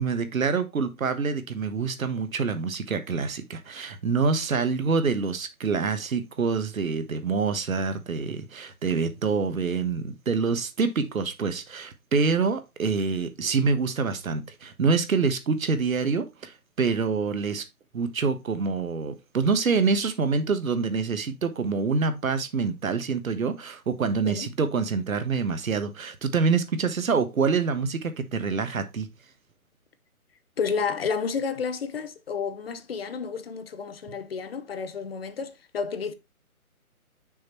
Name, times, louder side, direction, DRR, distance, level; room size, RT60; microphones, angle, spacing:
voice 1, 0.0-17.6 17.9-29.1, right 5 dB, 65° right, 1.4 m, -26 dB
voice 2, 30.6-36.1, left 5 dB, 40° left, 0.8 m, -31 dB
6.4 x 4.5 x 4.3 m
figure-of-eight pair, 145°, 44 cm